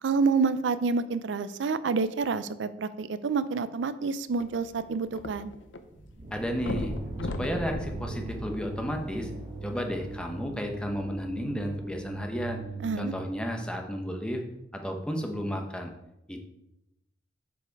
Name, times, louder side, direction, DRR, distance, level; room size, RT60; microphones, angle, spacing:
voice 1, 0.0-5.5 12.8-13.1, right 4 dB, 75° right, 14 dB, 0.4 m, -28 dB
sound 1, 4.3-5.8 6.1-6.2 6.6-9.2 9.9-10.0, left 2 dB, 85° left, 0.6 m, -37 dB
sound 2, 5.9-13.8, right 2 dB, 40° right, 1.1 m, -40 dB
voice 2, 6.3-6.9 7.2-9.3 9.6-12.6 13.0-14.4 14.8-15.9 16.3-16.5, equal, 5° left, 3 dB, 0.9 m, -32 dB
7.0 x 5.1 x 4.6 m, 0.87 s
head